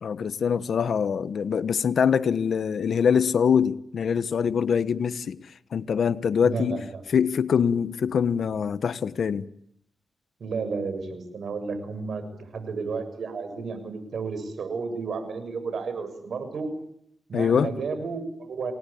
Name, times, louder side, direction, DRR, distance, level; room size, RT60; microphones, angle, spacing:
voice 1, 0.0-5.4 5.7-6.8 7.1-9.5 17.3-17.7, left 7 dB, 75° left, 1.2 m, -24 dB
voice 2, 6.4-7.0 10.4-12.2 12.5-16.7 17.3-18.7, right 4 dB, 75° right, 6.9 m, -32 dB
28.5 x 20.0 x 8.6 m
cardioid pair, 70°, 0 cm